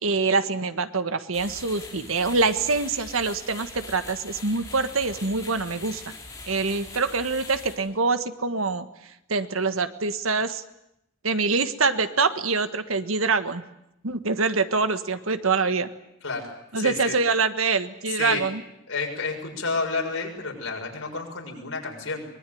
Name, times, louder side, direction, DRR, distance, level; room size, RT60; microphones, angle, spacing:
voice 1, 0.0-6.0 6.5-10.6 11.2-13.6 14.0-15.9 16.7-18.6, right 4 dB, 85° right, 10 dB, 1.5 m, -25 dB
sound 1, 1.3-7.7, left 3 dB, 15° left, 6.3 m, -42 dB
voice 2, 16.7-17.2 18.1-18.5 18.9-22.3, left 4 dB, 90° left, 1 dB, 6.6 m, -30 dB
24.0 x 21.0 x 9.4 m, 0.84 s
head